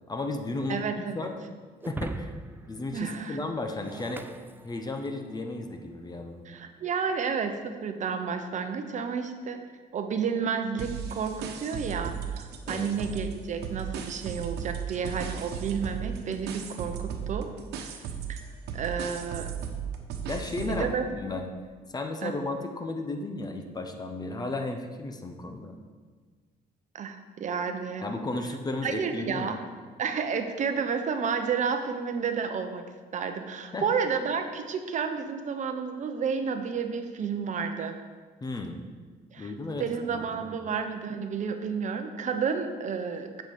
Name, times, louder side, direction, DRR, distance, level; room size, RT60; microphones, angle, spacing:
voice 1, 0.1-1.3 1.9-2.3 2.7-4.2 4.6-6.4 12.7-12.9 20.3-20.9 21.1-21.5 21.9-25.7 28.0-29.5 33.7-33.9 38.4-38.8 39.4-40.5, left 2 dB, 25° left, 5 dB, 1.0 m, -34 dB
voice 2, 0.7-1.3 2.9-3.4 6.4-9.6 9.9-17.5 18.3-18.4 18.7-19.5 20.7-21.1 22.2-22.3 26.9-28.0 28.8-29.6 30.0-32.8 33.1-37.9 39.3-39.5 39.8-43.4, right 6 dB, 45° right, 6 dB, 0.9 m, -31 dB
Shatter, 1.8-5.3, right 3 dB, 10° right, 0.4 m, -41 dB
sound 1, 10.8-13.3 13.6-20.9, right 7 dB, 80° right, 1.2 m, -36 dB
8.1 x 7.7 x 5.3 m, 1.5 s
cardioid pair, 110°, 17 cm